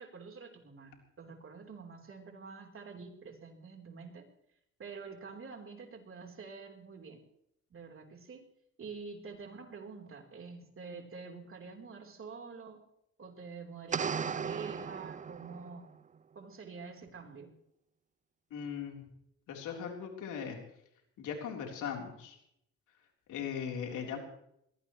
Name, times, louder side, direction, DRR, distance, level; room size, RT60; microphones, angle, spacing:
voice 1, 0.0-4.3 4.8-7.2 7.7-8.4 8.8-12.8 13.2-16.0 16.4-17.5, right 5 dB, 45° right, 2 dB, 3.8 m, -47 dB
sound 1, 13.9-15.8, right 6 dB, 25° right, 0.5 m, -36 dB
voice 2, 18.5-19.1 19.5-20.6 21.2-22.4 23.3-24.2, left 7 dB, 85° left, 1 dB, 3.8 m, -39 dB
21.5 x 17.5 x 3.2 m, 0.76 s
cardioid pair, 90°, 30 cm